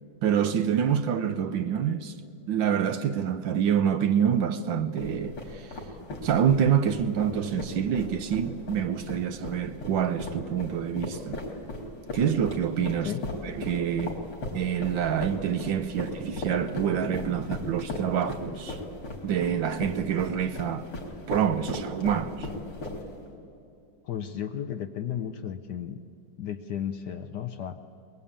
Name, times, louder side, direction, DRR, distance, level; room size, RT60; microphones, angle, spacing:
voice 1, 0.2-2.1 2.5-5.7 6.2-11.4 12.1-13.1 13.4-14.2 14.5-18.8 19.2-20.9 21.3-22.5, right 8 dB, 65° right, 1.4 m, -26 dB
sound 1, 5.0-23.3, left 2 dB, 85° left, 4.5 m, -37 dB
voice 2, 24.0-26.0 26.4-27.8, left 9 dB, 65° left, 1.2 m, -34 dB
22.5 x 22.0 x 8.8 m
omnidirectional pair, 2.4 m